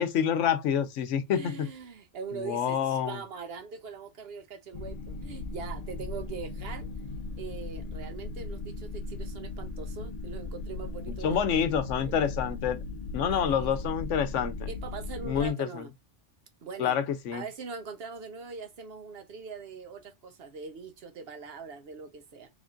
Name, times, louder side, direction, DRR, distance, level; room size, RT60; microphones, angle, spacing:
voice 1, 0.0-1.7 2.3-3.2 11.2-12.8 13.1-14.7 15.2-15.8 16.8-17.4, left 8 dB, 80° left, 1.0 m, -27 dB
voice 2, 1.3-6.9 7.4-12.5 13.1-13.7 14.7-15.9 16.6-17.0 17.3-22.5, right 5 dB, 60° right, 0.8 m, -42 dB
sound 1, 4.7-15.5, left 2 dB, 50° left, 0.5 m, -37 dB
3.5 x 2.5 x 3.7 m
omnidirectional pair, 1.3 m